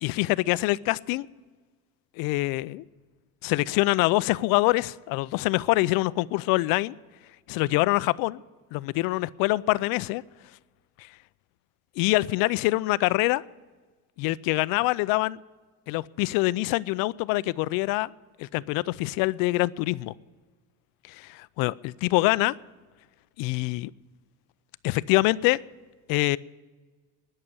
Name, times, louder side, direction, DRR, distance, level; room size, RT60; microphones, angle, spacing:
voice 1, 0.0-1.3 2.2-2.8 3.4-6.9 7.5-8.4 8.7-10.2 11.0-11.1 12.0-13.4 14.2-15.4 15.9-18.1 18.4-20.1 21.1-22.5 23.4-23.9 24.8-25.6 26.1-26.4, left 20 dB, 70° left, 19 dB, 0.5 m, -25 dB
20.0 x 6.7 x 9.8 m, 1.4 s
cardioid pair, 140°, 35 cm